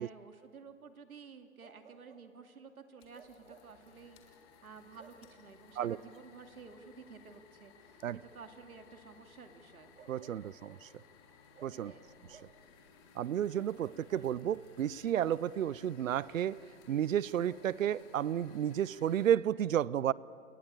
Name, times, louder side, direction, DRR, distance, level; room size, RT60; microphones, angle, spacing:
voice 1, 0.0-9.9 11.8-12.1, right 5 dB, 85° right, 6 dB, 2.5 m, -53 dB
Bark, 1.6-2.3 3.1-3.8 4.9-5.3 7.0-7.2 9.9-10.9 11.5-12.7 13.5-14.8 17.4-18.2, right 6 dB, 55° right, 2.7 m, -59 dB
sound 1, 3.0-19.3, left 6 dB, 20° left, 1.8 m, -60 dB
voice 2, 10.1-10.9 11.6-11.9 12.3-12.4 13.2-16.6 16.9-20.1, right 10 dB, 70° right, 22 dB, 0.6 m, -32 dB
28.0 x 19.5 x 8.8 m, 2.5 s
hypercardioid pair, 160°, 42 cm